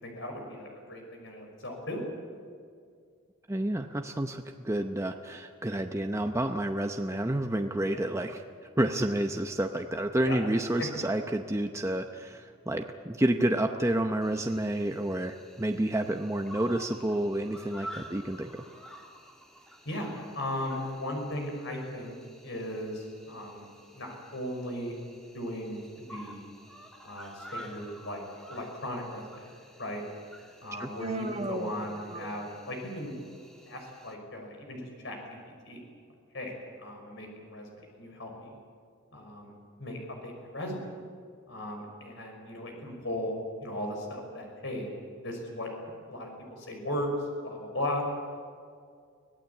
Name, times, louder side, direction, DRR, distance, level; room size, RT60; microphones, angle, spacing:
voice 1, 0.0-2.0 7.9-8.0 10.2-10.4 10.8-10.9 19.8-22.2 22.4-23.7 23.9-24.9 25.3-26.4 27.0-28.2 28.5-29.5 29.8-30.0 30.6-33.2 33.7-35.2 35.6-35.8 36.3-38.6 39.1-39.5 39.8-40.8 41.5-43.3 43.6-44.9 45.2-45.7 46.0-47.1 47.4-48.0, left 1 dB, 60° left, 2 dB, 5.6 m, -37 dB
voice 2, 3.5-8.4 8.8-18.5 30.8-30.9, right 1 dB, 15° right, 5 dB, 0.7 m, -29 dB
Cricket, 14.2-34.1, equal, 5° left, 2.1 m, -50 dB
Human voice, 31.0-32.7, right 2 dB, 30° right, 1.0 m, -36 dB
25.0 x 17.5 x 8.4 m, 2.2 s
head